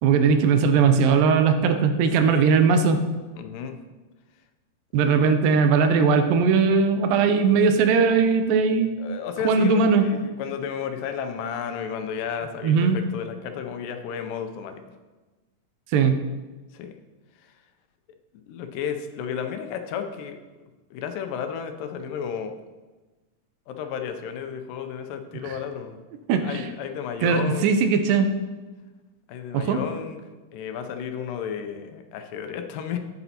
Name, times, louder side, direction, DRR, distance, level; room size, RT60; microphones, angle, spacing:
voice 1, 0.0-3.0 4.9-9.0 9.4-10.1 12.6-13.0 15.9-16.2 25.4-25.6 26.3-26.7 27.2-28.3 29.5-29.8, right 5 dB, 85° right, 7 dB, 2.4 m, -19 dB
voice 2, 2.0-2.5 3.3-3.8 5.0-5.4 9.0-14.8 16.7-17.0 17.4-17.5 18.5-20.4 20.9-22.6 23.7-26.0 26.4-27.7 29.3-30.2 30.5-33.0, left 7 dB, 85° left, 6 dB, 2.4 m, -33 dB
8.8 x 8.1 x 2.9 m, 1.2 s
omnidirectional pair, 3.9 m